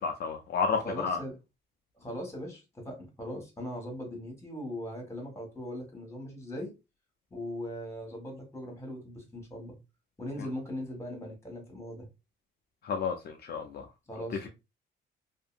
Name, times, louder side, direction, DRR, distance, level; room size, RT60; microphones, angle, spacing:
voice 1, 0.0-1.2 12.8-13.9, left 5 dB, 55° left, 0.5 m, -31 dB
voice 2, 0.8-1.4 2.0-6.7 7.3-9.7 10.2-12.1 14.1-14.5, equal, 15° left, 1.4 m, -39 dB
2.7 x 2.6 x 2.4 m
cardioid pair, 90°, 20 cm